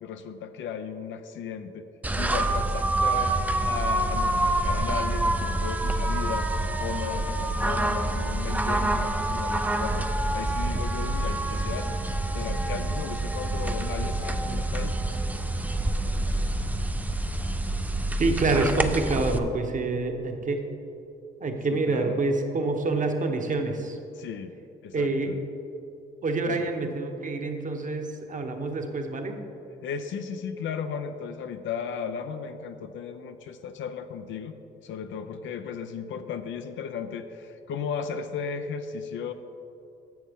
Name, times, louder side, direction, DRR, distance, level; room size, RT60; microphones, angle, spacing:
voice 1, 0.0-1.8 2.2-6.5 6.8-10.1 10.3-14.9 21.7-22.2 24.2-24.5 24.8-25.4 26.5-26.6 29.8-34.5 34.8-39.3, left 6 dB, 75° left, 8 dB, 0.5 m, -35 dB
sound 1, 2.0-19.4, right 1 dB, 10° right, 0.4 m, -27 dB
voice 2, 18.2-20.6 21.4-24.0 24.9-25.3 26.2-29.4, right 3 dB, 40° right, 4 dB, 1.0 m, -27 dB
10.5 x 7.2 x 3.6 m, 2.8 s
cardioid pair, 90°, 20 cm